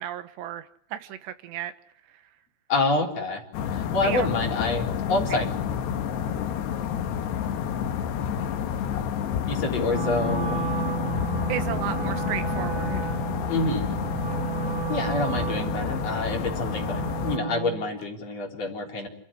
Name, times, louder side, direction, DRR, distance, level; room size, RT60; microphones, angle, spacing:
voice 1, 0.0-1.7 2.1-2.2 4.0-4.3 11.5-13.0, right 11 dB, 85° right, 10 dB, 3.5 m, -33 dB
voice 2, 2.7-3.4 3.7-5.5 9.5-10.6 13.5-14.0 14.9-19.1, left 3 dB, 40° left, 0 dB, 4.6 m, -27 dB
sound 1, 3.5-17.4, left 8 dB, 80° left, 3.3 m, -29 dB
Wind instrument woodwind instrument, 9.9-17.9, right 9 dB, 15° right, 3.8 m, -32 dB
29.0 x 13.5 x 10.0 m, 0.73 s
omnidirectional pair, 4.9 m